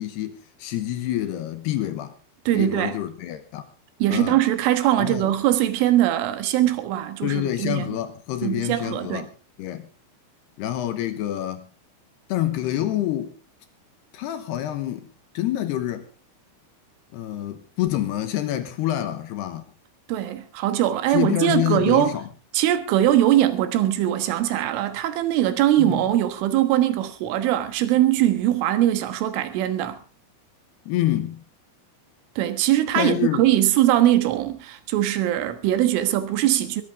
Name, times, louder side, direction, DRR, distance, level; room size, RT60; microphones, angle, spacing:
voice 1, 0.0-2.1 2.5-3.6 4.1-4.4 5.0-5.3 7.2-9.3 9.6-9.9 10.6-11.7 12.3-13.3 14.1-15.1 15.3-16.1 17.1-19.6 21.1-22.3 25.8-26.0 30.9-31.4 33.0-33.4, left 13 dB, 70° left, 2.8 m, -27 dB
voice 2, 2.5-3.0 4.0-8.0 8.4-9.3 20.1-22.1 22.5-30.0 32.4-36.8, right 13 dB, 85° right, 3.9 m, -21 dB
22.0 x 13.5 x 3.6 m
omnidirectional pair, 5.5 m